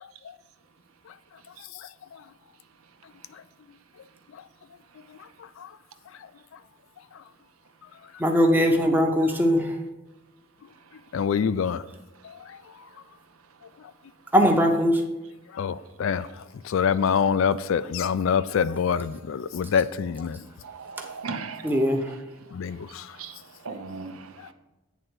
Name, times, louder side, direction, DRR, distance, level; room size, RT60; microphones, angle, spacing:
voice 1, 8.2-9.8 14.3-15.0 21.6-22.1, equal, 10° right, 0.7 m, -20 dB
voice 2, 11.1-11.8 15.6-15.7 16.0-16.3 16.7-20.4 22.5-22.8, left 7 dB, 65° left, 0.3 m, -24 dB
voice 3, 20.6-22.2 23.1-23.4 23.6-24.5, right 4 dB, 75° right, 0.7 m, -38 dB
9.1 x 3.8 x 6.2 m
head